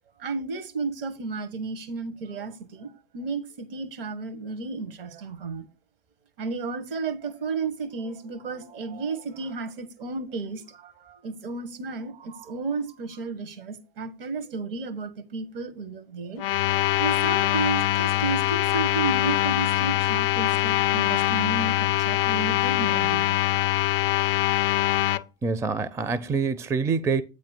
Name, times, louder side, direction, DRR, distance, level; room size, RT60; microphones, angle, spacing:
voice 1, 0.2-2.9 3.1-5.7 6.4-16.4 17.0-23.7, right 4 dB, 65° right, 1.3 m, -33 dB
sound 1, 16.4-25.2, left 14 dB, 65° left, 0.5 m, -23 dB
voice 2, 25.4-27.2, right 5 dB, 10° right, 0.4 m, -26 dB
8.5 x 3.0 x 6.3 m
figure-of-eight pair, 75°, 30 cm